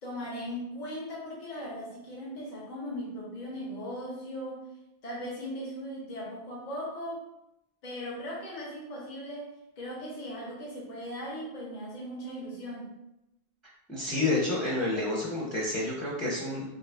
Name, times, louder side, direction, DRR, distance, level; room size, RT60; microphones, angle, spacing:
voice 1, 0.0-4.7 5.0-7.3 7.8-9.5 9.8-13.0, equal, 50° left, -4 dB, 0.7 m, -38 dB
voice 2, 13.9-16.7, left 2 dB, ahead, -5 dB, 0.5 m, -29 dB
2.9 x 2.6 x 3.3 m, 0.88 s
omnidirectional pair, 1.0 m